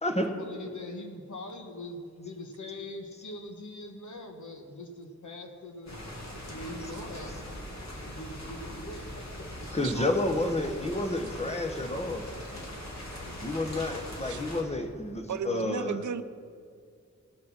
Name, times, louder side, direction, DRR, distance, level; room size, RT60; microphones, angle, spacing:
voice 1, 0.2-6.0 6.5-7.4 8.0-9.1 9.5-10.3, left 1 dB, 85° left, 4 dB, 1.3 m, -42 dB
sound 1, 5.9-14.6, left 1 dB, 65° left, 2.1 m, -41 dB
voice 2, 9.7-12.3 13.4-16.0, left 1 dB, 20° left, 5 dB, 1.0 m, -30 dB
voice 3, 15.3-16.2, right 7 dB, 85° right, 13 dB, 0.5 m, -34 dB
18.0 x 6.3 x 5.9 m, 2.2 s
wide cardioid pair, 100°, 29 cm